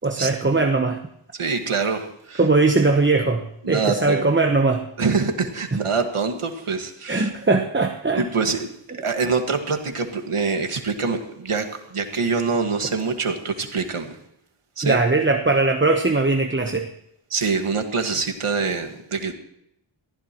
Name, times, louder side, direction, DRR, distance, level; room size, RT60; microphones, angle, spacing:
voice 1, 0.0-1.0 2.4-4.8 7.1-8.2 8.9-9.0 14.8-16.9, right 3 dB, 25° right, 4 dB, 1.0 m, -20 dB
voice 2, 1.4-2.4 3.6-4.2 5.0-7.3 8.1-8.7 9.0-14.2 14.8-15.0 17.3-19.3, right 4 dB, 85° right, 5 dB, 1.9 m, -25 dB
22.5 x 15.0 x 3.0 m, 0.76 s
wide cardioid pair, 80°, 50 cm